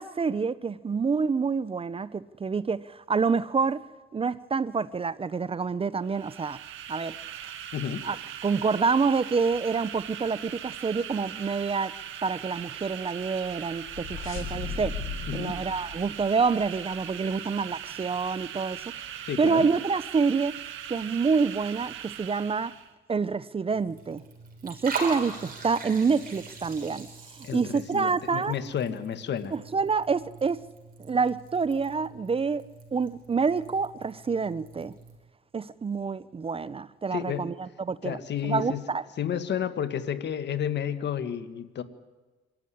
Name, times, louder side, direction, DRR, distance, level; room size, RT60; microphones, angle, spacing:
voice 1, 0.0-3.8 4.1-6.6 6.9-7.1 8.0-8.2 8.4-11.9 12.2-15.0 15.3-18.8 19.4-20.6 20.9-22.7 23.1-24.2 24.6-27.1 27.5-28.6 29.5-30.6 31.0-32.6 32.9-34.9 35.5-38.2 38.4-39.0, right 5 dB, 30° right, 0.6 m, -27 dB
sound 1, 6.0-22.9, right 10 dB, 85° right, 1.7 m, -40 dB
voice 2, 7.7-8.0 15.3-15.5 19.2-19.7 27.4-29.5 37.1-37.4 38.0-38.8 39.2-41.8, left 8 dB, 60° left, 1.6 m, -31 dB
sound 2, 13.4-17.0, left 5 dB, 85° left, 4.0 m, -38 dB
Liquid, 23.7-35.2, right 4 dB, 45° right, 5.8 m, -41 dB
25.5 x 13.5 x 9.9 m
cardioid pair, 90°, 20 cm